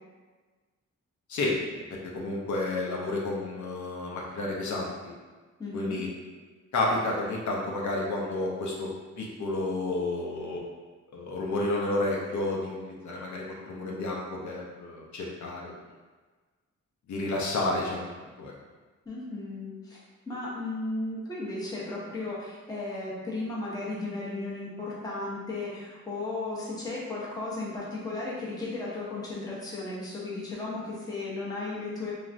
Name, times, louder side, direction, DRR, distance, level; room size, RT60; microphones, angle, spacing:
voice 1, 1.3-5.1 5.7-6.1 6.7-8.9 9.2-10.6 11.1-15.7 17.1-18.5, left 2 dB, 70° left, -3 dB, 0.6 m, -31 dB
voice 2, 5.6-6.0 19.1-20.0 20.3-32.1, left 2 dB, 15° left, -6 dB, 0.5 m, -35 dB
3.1 x 2.4 x 2.5 m, 1.3 s
wide cardioid pair, 170°, 30 cm